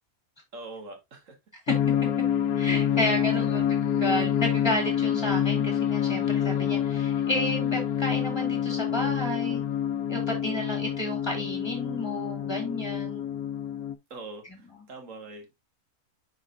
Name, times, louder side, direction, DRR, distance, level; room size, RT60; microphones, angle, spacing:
voice 1, 0.5-1.4 2.9-3.7 14.1-15.5, right 3 dB, 60° right, 1.8 m, -43 dB
sound 1, 1.7-13.9, left 9 dB, 80° left, 1.1 m, -27 dB
voice 2, 2.6-9.6 10.1-13.3, left 1 dB, 15° left, 2.5 m, -31 dB
9.6 x 4.1 x 2.5 m
omnidirectional pair, 1.5 m